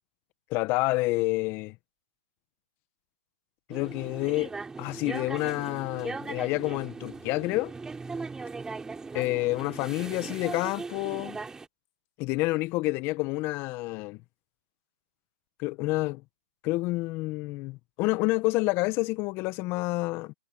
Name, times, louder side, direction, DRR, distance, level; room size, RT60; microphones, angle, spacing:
voice 1, 0.5-1.7 3.7-4.5 4.8-7.7 9.1-11.4 12.2-14.2 15.6-16.2 16.6-20.3, left 22 dB, 30° left, 1.4 m, -28 dB
sound 1, 3.7-11.7, right 4 dB, 10° right, 5.6 m, -39 dB
hypercardioid pair, 130°, 7 cm